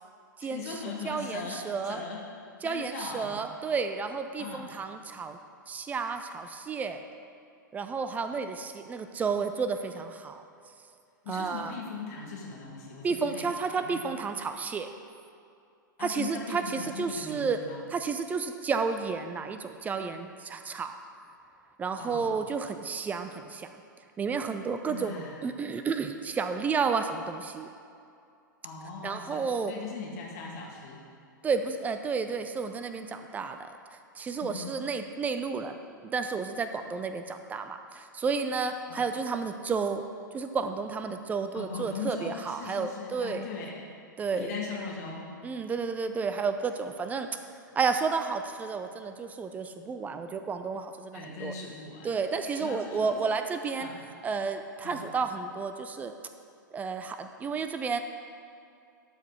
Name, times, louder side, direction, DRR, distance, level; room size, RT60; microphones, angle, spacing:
voice 1, 0.4-2.2 2.6-3.4 4.4-4.8 11.2-13.5 13.7-14.1 16.0-17.9 22.0-22.4 24.8-25.4 28.6-29.4 29.7-31.0 34.4-34.7 38.9-39.0 41.5-43.9 44.3-45.3 51.1-52.1 52.6-53.2 53.8-54.1 54.8-55.1, left 5 dB, 50° left, -2 dB, 2.1 m, -39 dB
voice 2, 1.0-2.0 2.6-5.4 5.7-7.0 7.7-10.4 11.3-11.7 13.0-14.9 16.0-17.6 17.9-21.0 21.8-23.7 24.2-27.7 29.0-29.7 31.4-33.7 34.2-40.0 40.3-43.4 44.2-44.5 45.4-47.4 47.8-51.5 52.0-53.9 54.2-56.1 56.7-58.0, right 5 dB, 15° right, 8 dB, 0.4 m, -31 dB
12.0 x 4.8 x 5.5 m, 2.4 s
figure-of-eight pair, 105°, 11 cm